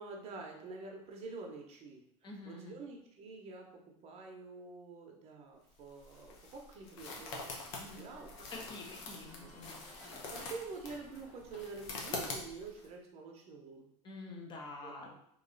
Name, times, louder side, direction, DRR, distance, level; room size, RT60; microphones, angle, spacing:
voice 1, 0.0-9.0 9.3-9.5 10.3-13.9 14.8-15.1, right 3 dB, 35° right, 1 dB, 0.8 m, -48 dB
voice 2, 2.2-2.8 7.8-8.1 8.5-9.8 14.0-15.1, left 2 dB, 25° left, 1 dB, 0.8 m, -47 dB
sound 1, 5.7-12.9, left 3 dB, 70° left, 0.9 m, -45 dB
sound 2, 6.9-12.7, equal, 50° left, 1.4 m, -57 dB
3.1 x 2.6 x 3.9 m, 0.70 s
supercardioid pair, 130°, 17 cm